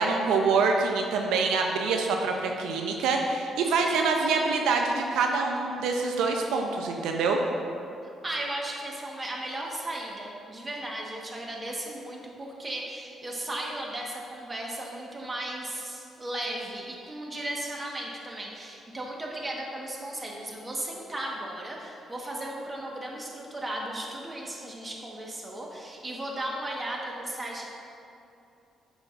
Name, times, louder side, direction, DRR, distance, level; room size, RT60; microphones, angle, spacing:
voice 1, 0.0-7.4, right 4 dB, 90° right, 2 dB, 0.5 m, -25 dB
voice 2, 8.0-27.7, right 1 dB, 25° right, -2 dB, 1.3 m, -36 dB
9.9 x 6.3 x 2.5 m, 2.7 s
cardioid pair, 90°, 0 cm